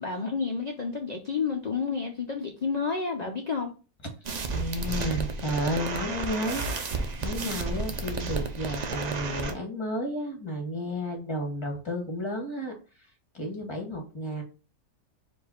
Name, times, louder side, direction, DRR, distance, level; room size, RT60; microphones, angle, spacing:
voice 1, 0.0-3.7, left 5 dB, 80° left, 0.3 m, -30 dB
sound 1, 4.2-9.5, right 4 dB, 60° right, 0.4 m, -32 dB
voice 2, 4.5-12.7 13.3-14.4, equal, 20° left, 1.1 m, -32 dB
4.8 x 2.6 x 4.3 m
omnidirectional pair, 1.5 m